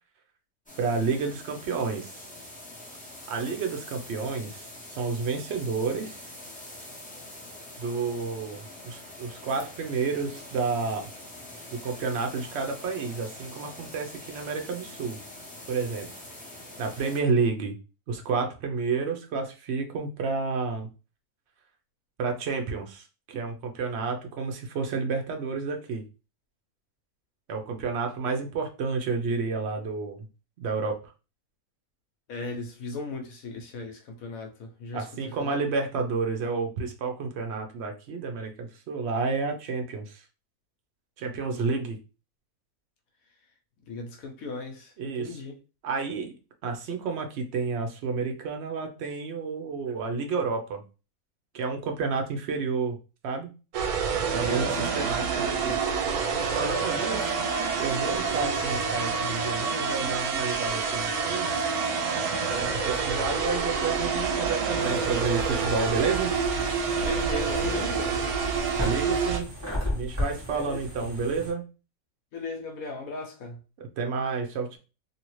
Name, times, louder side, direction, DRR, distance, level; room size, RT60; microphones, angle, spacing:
sound 1, 0.7-17.2, left 1 dB, 10° left, 0.5 m, -44 dB
voice 1, 0.8-2.2 3.3-6.2 7.8-11.1 11.7-15.2 15.7-16.1 16.8-17.8 18.1-20.9 22.2-26.1 27.5-30.3 30.6-31.1 34.9-40.2 41.2-42.0 45.0-45.4 45.8-46.3 46.6-50.9 51.5-53.0 53.2-53.5 54.4-55.8 56.5-57.4 57.8-61.6 62.5-66.4 68.8-69.5 69.9-71.6 73.8-74.8, right 4 dB, 55° right, 0.8 m, -30 dB
voice 2, 32.3-35.6 41.5-41.8 43.9-45.6 54.3-54.9 57.0-57.5 67.0-68.2 70.5-71.1 72.3-73.6, left 3 dB, 70° left, 1.0 m, -38 dB
sound 2, 53.7-69.4, right 5 dB, 75° right, 1.1 m, -27 dB
sound 3, 64.8-71.5, left 1 dB, 15° right, 1.3 m, -35 dB
2.8 x 2.7 x 3.0 m
omnidirectional pair, 1.6 m